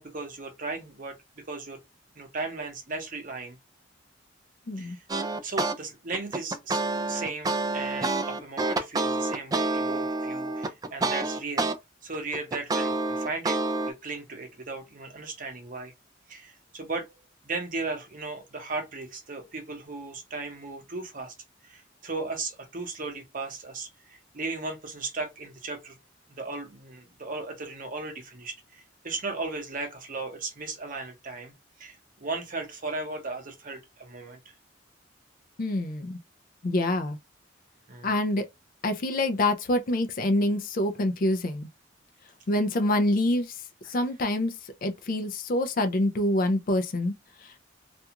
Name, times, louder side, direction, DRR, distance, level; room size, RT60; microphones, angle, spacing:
voice 1, 0.0-1.8 2.2-3.6 4.8-5.0 5.4-6.8 7.1-11.6 12.0-13.6 13.9-15.9 16.3-17.2 17.4-21.3 21.6-25.9 26.3-31.5 31.8-34.4 37.9-38.1 43.9-44.0, right 3 dB, 45° right, 0.8 m, -36 dB
sound 1, 5.1-5.8 6.1-11.7 12.1-13.9, right 2 dB, 20° right, 0.3 m, -28 dB
voice 2, 35.6-36.2 36.6-37.2 38.0-38.5 38.8-41.7 42.5-43.6 43.9-47.1 47.4-47.6, left 1 dB, 50° left, 0.4 m, -26 dB
2.5 x 2.3 x 2.8 m
head